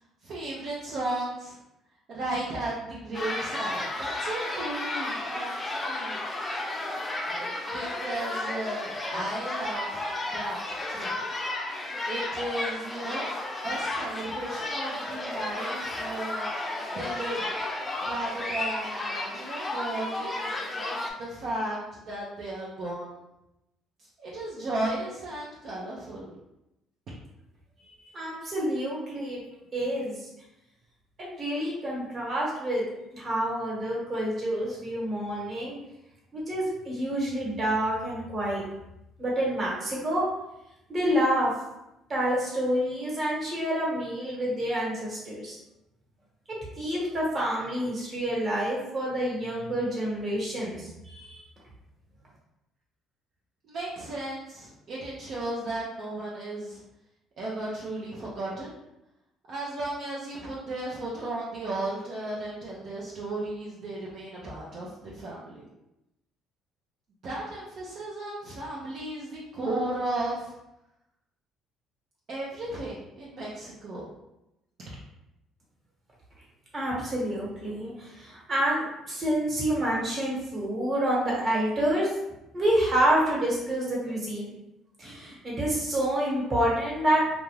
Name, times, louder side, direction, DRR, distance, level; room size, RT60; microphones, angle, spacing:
voice 1, 0.2-1.6 2.1-6.2 7.2-10.0 10.3-10.6 10.9-11.2 12.1-16.5 16.9-17.5 18.0-20.5 21.2-23.2 24.2-26.3 53.7-56.8 57.4-58.8 59.5-65.6 67.2-70.5 72.3-74.1, right 1 dB, 60° right, -6 dB, 0.6 m, -35 dB
sound 1, 3.1-21.1, left 2 dB, 25° left, 0.5 m, -33 dB
voice 2, 27.8-29.4 29.7-30.3 31.2-32.8 33.1-35.7 36.3-38.6 39.2-40.2 40.9-41.5 42.1-45.6 46.8-51.4 76.7-82.1 82.5-84.5 85.0-87.2, right 1 dB, 40° right, -5 dB, 1.2 m, -28 dB
2.5 x 2.3 x 3.2 m, 0.90 s
cardioid pair, 90°, 0 cm